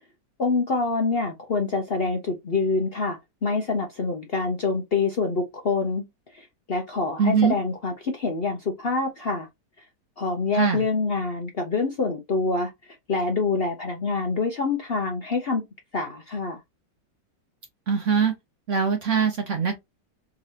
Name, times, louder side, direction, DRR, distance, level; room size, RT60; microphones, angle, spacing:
voice 1, 0.4-6.0 6.3-9.5 10.2-12.7 13.1-15.6 15.9-16.6, left 4 dB, 55° left, 0.6 m, -26 dB
voice 2, 7.2-7.6 10.5-10.8 17.9-18.3 18.7-19.8, right 6 dB, 60° right, 0.8 m, -22 dB
3.8 x 3.1 x 2.7 m
omnidirectional pair, 1.9 m